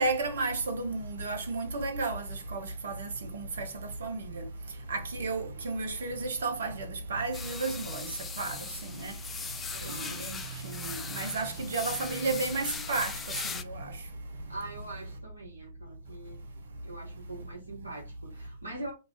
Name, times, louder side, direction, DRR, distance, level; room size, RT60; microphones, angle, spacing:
voice 1, 0.0-3.7 4.0-4.5 4.9-9.1 9.8-10.4 10.6-13.1 13.4-13.9, right 3 dB, 65° right, 0.6 m, -33 dB
sound 1, 7.3-13.6, left 5 dB, 15° left, 0.3 m, -39 dB
voice 2, 9.7-10.3 14.5-16.4 16.8-18.9, right 2 dB, 85° right, 0.9 m, -43 dB
2.4 x 2.3 x 3.3 m
figure-of-eight pair, 110°, 0 cm